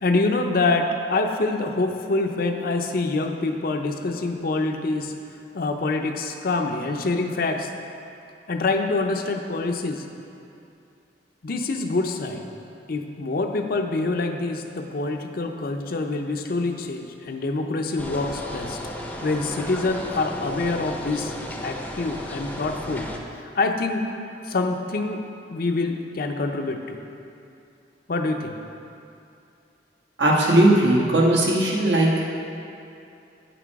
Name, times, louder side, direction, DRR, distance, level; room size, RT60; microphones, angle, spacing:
voice 1, 0.0-5.1 5.5-7.7 8.5-10.1 11.4-12.5 12.9-18.8 19.2-21.3 21.6-23.1 23.5-24.1 24.4-25.2 25.5-27.0 28.1-28.6, left 3 dB, 55° left, 4 dB, 0.6 m, -25 dB
sound 1, 18.0-23.2, equal, 10° left, 0.6 m, -34 dB
voice 2, 30.2-32.1, right 1 dB, 80° right, -3 dB, 1.4 m, -18 dB
8.5 x 6.0 x 4.7 m, 2.6 s
head